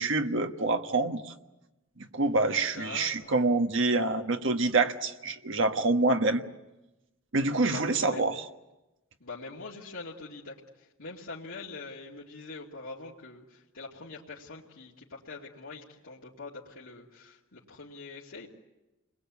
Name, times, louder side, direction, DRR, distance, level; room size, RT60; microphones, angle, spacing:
voice 1, 0.0-1.3 2.0-6.4 7.3-8.4, right 3 dB, 65° right, 6 dB, 1.4 m, -26 dB
voice 2, 2.6-3.3 7.6-8.2 9.2-18.5, left 3 dB, 85° left, -6 dB, 2.7 m, -44 dB
29.5 x 22.0 x 8.4 m, 1.0 s
head